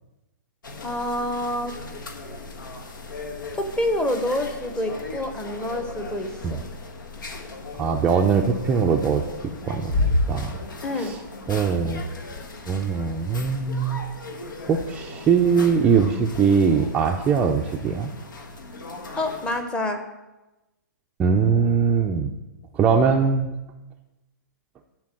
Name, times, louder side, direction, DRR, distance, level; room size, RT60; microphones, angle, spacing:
sound 1, 0.6-19.6, left 2 dB, 85° left, 1.5 m, -34 dB
voice 1, 0.8-1.7 3.5-6.6 10.8-11.1 19.2-20.0, left 1 dB, 10° left, 6 dB, 0.8 m, -27 dB
voice 2, 7.7-9.2 9.6-9.9 10.3-10.6 11.0-11.2 11.5-12.0 12.7-14.0 14.7-18.1 21.2-22.3 22.7-23.5, right 6 dB, 10° right, 1 dB, 0.4 m, -21 dB
11.0 x 4.5 x 7.4 m, 1.0 s
hypercardioid pair, 155°, 10 cm